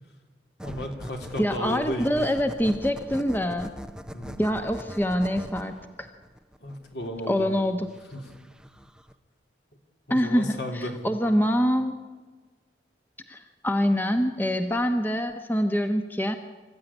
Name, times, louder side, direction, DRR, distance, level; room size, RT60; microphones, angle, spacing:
voice 1, 0.6-2.2 4.1-4.4 6.6-7.5 8.1-8.3 10.1-10.9, left 1 dB, 65° left, 3 dB, 3.4 m, -34 dB
sound 1, 0.6-9.1, equal, 5° right, 0.6 m, -42 dB
voice 2, 1.4-3.7 4.4-6.1 7.3-7.9 10.1-11.9 13.3-16.4, equal, 10° left, 7 dB, 1.0 m, -25 dB
26.5 x 14.5 x 9.9 m, 1.4 s
head